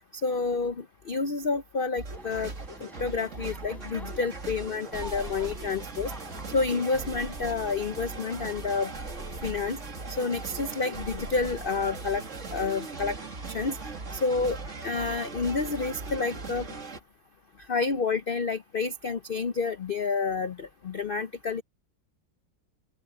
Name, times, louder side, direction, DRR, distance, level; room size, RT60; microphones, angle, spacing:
voice 1, 0.2-2.5 3.0-6.1 6.5-8.9 9.4-9.8 10.1-12.2 12.5-13.2 13.5-13.8 14.1-16.6 17.7-21.6, left 4 dB, 70° left, 0.5 m, -29 dB
sound 1, 2.0-17.0, right 3 dB, 40° right, 2.4 m, -39 dB
sound 2, 2.1-14.2, equal, ahead, 7.5 m, -51 dB
open air
omnidirectional pair, 2.0 m